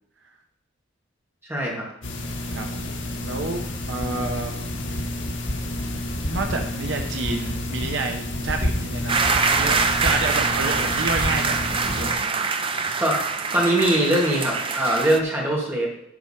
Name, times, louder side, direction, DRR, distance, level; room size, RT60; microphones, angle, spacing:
voice 1, 1.5-1.8 13.0-13.3 13.5-15.9, right 1 dB, 10° right, -4 dB, 2.4 m, -22 dB
sound 1, 2.0-12.1, left 1 dB, 80° left, 1.7 m, -29 dB
voice 2, 2.5-2.9 3.2-4.7 6.3-12.5, right 3 dB, 70° right, 4 dB, 0.9 m, -30 dB
sound 2, 9.1-15.2, right 4 dB, 30° right, 0.6 m, -24 dB
11.0 x 4.5 x 5.8 m, 0.78 s
head